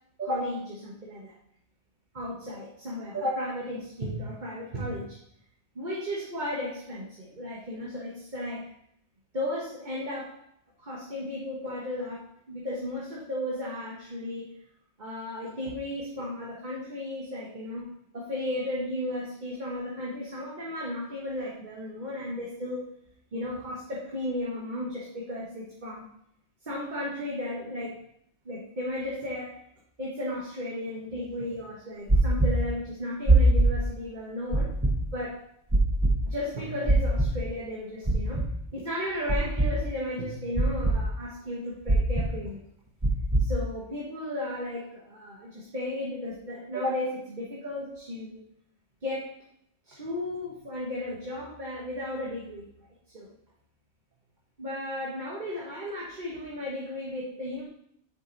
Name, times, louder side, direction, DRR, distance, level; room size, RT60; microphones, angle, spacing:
voice 1, 0.2-1.3 2.1-5.1 5.7-8.7 9.3-10.3 10.8-12.2 12.5-14.5 15.0-17.8 18.1-22.8 23.3-26.0 26.6-28.0 28.4-29.6 30.0-34.7 35.1-35.4 36.2-38.4 38.7-42.6 43.4-48.4 49.0-49.3 49.8-52.7 53.1-53.3 54.6-57.6, left 1 dB, 45° right, -5 dB, 1.5 m, -34 dB
sound 1, 32.1-32.5 33.3-33.7 34.5-34.9 35.7-36.1 36.9-37.3 38.1-38.5 39.3-39.7 40.6-41.0 41.9-42.3 43.0-43.4, right 3 dB, 15° right, 0.9 m, -21 dB
7.9 x 5.4 x 4.1 m, 0.72 s
omnidirectional pair, 1.1 m